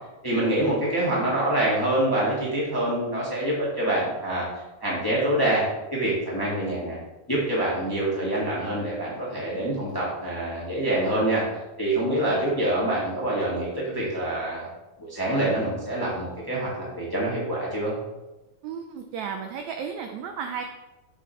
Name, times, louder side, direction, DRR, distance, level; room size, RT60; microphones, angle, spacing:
voice 1, 0.2-4.4 4.8-5.6 5.9-7.0 7.3-11.4 11.8-14.7 15.0-17.9, right 1 dB, 10° left, -6 dB, 1.2 m, -26 dB
voice 2, 18.6-20.6, right 6 dB, 80° right, 5 dB, 1.6 m, -33 dB
7.8 x 6.8 x 3.2 m, 1.0 s
omnidirectional pair, 3.8 m